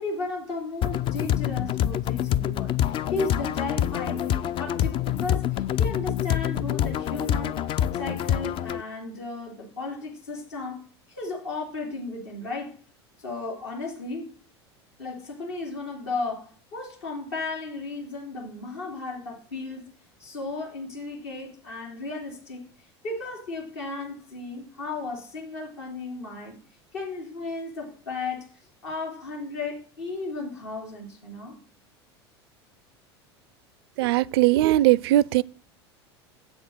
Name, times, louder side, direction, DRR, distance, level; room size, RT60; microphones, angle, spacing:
voice 1, 0.0-12.8 13.2-14.3 15.0-19.9 20.2-26.6 26.9-28.5 28.8-31.6, left 3 dB, 70° left, 2.9 m, -35 dB
sound 1, 0.8-8.8, left 11 dB, 40° left, 0.4 m, -26 dB
voice 2, 34.0-35.4, right 15 dB, 60° right, 0.4 m, -19 dB
7.9 x 6.5 x 6.3 m
figure-of-eight pair, 75°, 14 cm